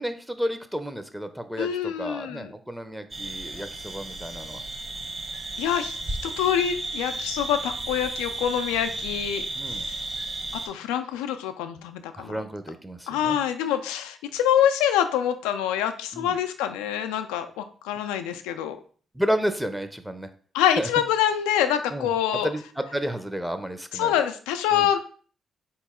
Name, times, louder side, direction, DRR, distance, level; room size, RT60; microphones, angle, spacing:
voice 1, 0.0-4.6 9.6-9.9 12.2-13.4 16.1-16.4 19.1-20.3 20.8-20.9 21.9-24.1 24.7-24.9, equal, 5° right, 9 dB, 0.6 m, -31 dB
voice 2, 1.6-2.5 5.6-9.9 10.6-12.4 13.1-18.8 20.5-22.5 23.9-25.0, left 10 dB, 85° left, 9 dB, 0.3 m, -26 dB
sound 1, 3.1-10.7, right 2 dB, 40° right, 1.1 m, -33 dB
4.0 x 3.0 x 3.6 m, 0.43 s
hypercardioid pair, 45°, 0 cm